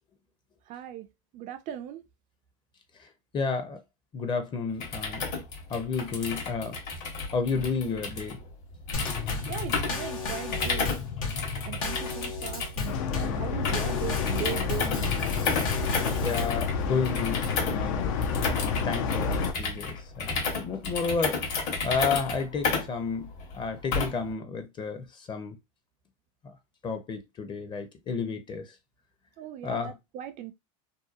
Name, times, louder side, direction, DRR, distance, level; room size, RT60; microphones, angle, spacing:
voice 1, 0.7-1.1 1.3-2.0 9.5-10.9 11.7-15.2 29.4-30.5, right 11 dB, 45° right, 0.4 m, -38 dB
voice 2, 3.3-3.8 4.1-5.2 5.7-6.8 7.3-8.4 16.2-25.6 26.8-28.6 29.6-29.9, left 5 dB, 30° left, 0.6 m, -31 dB
sound 1, 4.7-24.3, left 4 dB, 55° left, 1.1 m, -33 dB
Drum kit / Snare drum / Bass drum, 8.9-16.6, left 4 dB, 90° left, 1.0 m, -34 dB
sound 2, 12.9-19.5, left 5 dB, 75° left, 0.5 m, -29 dB
2.7 x 2.2 x 2.4 m
supercardioid pair, 120°, 17 cm